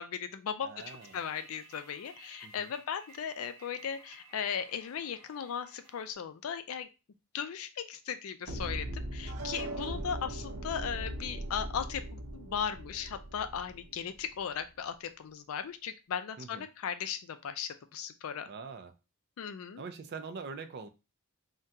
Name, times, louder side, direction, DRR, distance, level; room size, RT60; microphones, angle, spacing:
voice 1, 0.0-6.9 7.3-18.5 19.4-19.8, left 7 dB, 70° left, 9 dB, 0.4 m, -37 dB
voice 2, 0.6-1.2 2.4-2.7 16.4-16.7 18.5-18.9 19.8-20.9, right 5 dB, 50° right, 9 dB, 0.4 m, -43 dB
sound 1, 0.8-6.1, right 3 dB, 15° right, 1.0 m, -56 dB
sound 2, 8.5-14.4, right 1 dB, 80° right, 0.7 m, -39 dB
3.7 x 2.2 x 2.7 m, 0.28 s
head